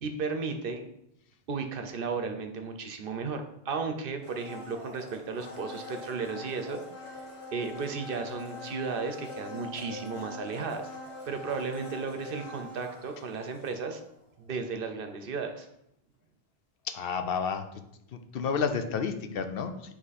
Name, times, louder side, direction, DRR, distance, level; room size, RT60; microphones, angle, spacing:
voice 1, 0.0-0.8 1.5-6.8 7.5-10.9 11.3-14.0 14.4-15.7, right 4 dB, 65° right, 6 dB, 0.8 m, -34 dB
Domestic sounds home sounds, 4.2-14.2 14.5-14.6, left 3 dB, 30° left, 1.7 m, -43 dB
voice 2, 16.9-17.6 18.3-19.7, left 6 dB, 70° left, 8 dB, 0.8 m, -30 dB
7.4 x 3.1 x 4.1 m, 0.77 s
omnidirectional pair, 1.0 m